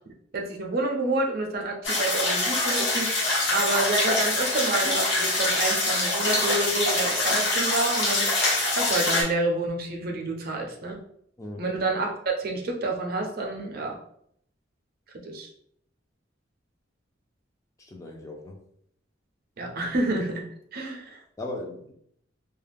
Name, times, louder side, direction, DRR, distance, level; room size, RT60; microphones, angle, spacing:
voice 1, 0.3-8.3 8.7-11.0 11.6-12.1 12.4-14.0 15.2-15.5 19.6-20.4 20.7-21.2, right 2 dB, 55° right, 1 dB, 0.5 m, -28 dB
sound 1, 1.8-9.2, left 2 dB, 70° left, 1.0 m, -24 dB
voice 2, 17.8-18.6 21.4-21.9, left 2 dB, 15° left, 0 dB, 0.4 m, -37 dB
2.3 x 2.0 x 3.4 m, 0.69 s
head